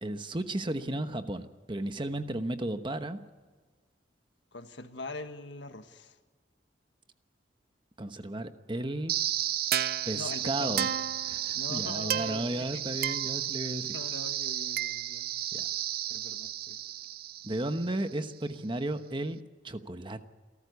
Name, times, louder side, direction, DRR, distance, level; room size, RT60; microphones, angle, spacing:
voice 1, 0.0-3.2 8.0-9.1 10.1-10.9 11.3-13.9 15.5-15.7 17.4-20.3, right 1 dB, 25° right, 9 dB, 1.1 m, -34 dB
voice 2, 4.5-6.2 10.1-10.9 11.5-12.8 13.9-15.3 16.1-16.8, left 3 dB, 75° left, 8 dB, 1.6 m, -42 dB
sound 1, 9.1-18.1, right 11 dB, 55° right, 0.6 m, -32 dB
28.5 x 13.5 x 8.2 m, 1.4 s
head